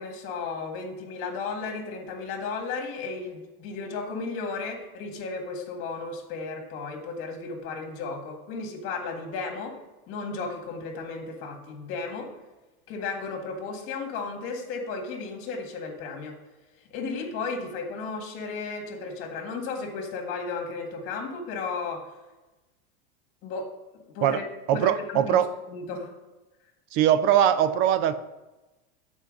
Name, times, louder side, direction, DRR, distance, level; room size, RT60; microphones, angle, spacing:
voice 1, 0.0-9.8 10.1-12.3 12.9-16.4 16.9-22.1 23.4-24.4 24.7-25.4 25.7-26.1, left 4 dB, 45° left, 3 dB, 1.8 m, -34 dB
voice 2, 24.7-25.5 26.9-28.2, right 10 dB, 40° right, 13 dB, 0.5 m, -21 dB
8.1 x 4.5 x 6.4 m, 1.1 s
supercardioid pair, 150°, 29 cm